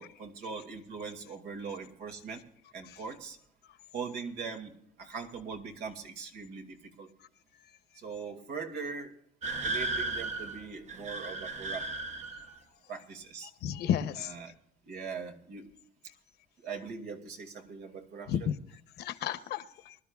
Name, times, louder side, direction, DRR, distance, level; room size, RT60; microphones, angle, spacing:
voice 1, 0.0-2.4 2.7-3.4 3.9-7.1 8.0-9.1 9.6-11.9 12.9-13.5 14.3-14.5 14.9-15.7 16.6-18.3, right 5 dB, 75° right, 3 dB, 2.4 m, -41 dB
sound 1, 9.4-12.6, right 2 dB, 45° right, 1.1 m, -35 dB
voice 2, 13.6-14.3 18.3-18.6 19.0-19.9, left 9 dB, 75° left, 11 dB, 1.1 m, -32 dB
24.5 x 12.5 x 2.4 m, 0.69 s
cardioid pair, 110°, 17 cm